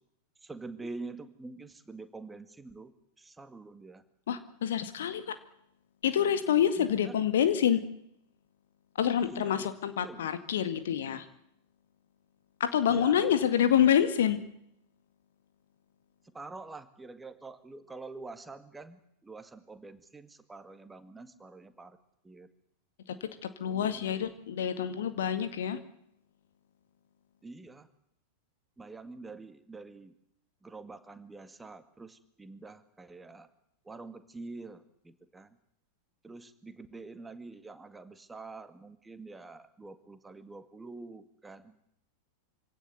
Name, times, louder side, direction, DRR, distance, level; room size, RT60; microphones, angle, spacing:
voice 1, 0.4-2.9 3.2-4.0 6.8-7.1 9.2-9.7 10.0-10.2 12.9-13.3 16.3-22.0 22.2-22.5 23.7-24.3 27.4-27.9 28.8-30.1 30.6-33.5 33.9-35.5 36.2-41.8, right 3 dB, 10° right, 11 dB, 2.0 m, -46 dB
voice 2, 4.3-5.4 6.0-7.8 9.0-11.3 12.6-14.4 23.2-25.8, left 9 dB, 60° left, 11 dB, 2.0 m, -27 dB
25.0 x 17.5 x 9.6 m, 0.76 s
figure-of-eight pair, 90°, 0 cm